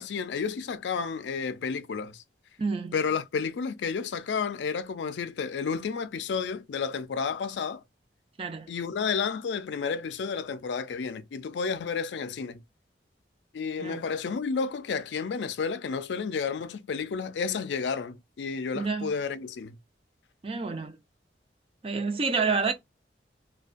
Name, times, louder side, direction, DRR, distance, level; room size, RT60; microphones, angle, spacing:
voice 1, 0.0-2.2 2.9-7.8 8.7-12.6 13.5-19.8, left 5 dB, 75° left, 0.4 m, -31 dB
voice 2, 2.6-3.0 8.4-8.7 13.8-14.0 18.7-19.1 20.4-21.0 21.8-22.7, right 4 dB, 30° right, 0.4 m, -28 dB
2.5 x 2.2 x 2.4 m
head